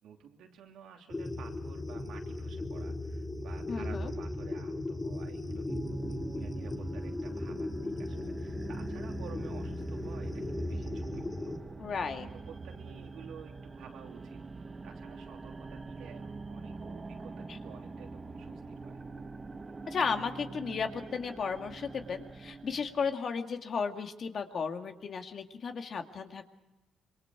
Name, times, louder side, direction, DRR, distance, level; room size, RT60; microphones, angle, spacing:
voice 1, 0.0-6.0 6.3-11.6 12.1-19.0, right 8 dB, 80° right, 2 dB, 3.0 m, -52 dB
sound 1, 1.1-11.6, left 2 dB, 20° left, 1.9 m, -37 dB
voice 2, 3.7-4.1 11.8-12.3 17.5-17.6 19.9-26.4, left 5 dB, 50° left, 5 dB, 2.0 m, -34 dB
sound 2, 5.7-23.1, right 3 dB, 25° right, 1.1 m, -44 dB
26.5 x 23.5 x 4.7 m, 1.0 s
cardioid pair, 90°, 0 cm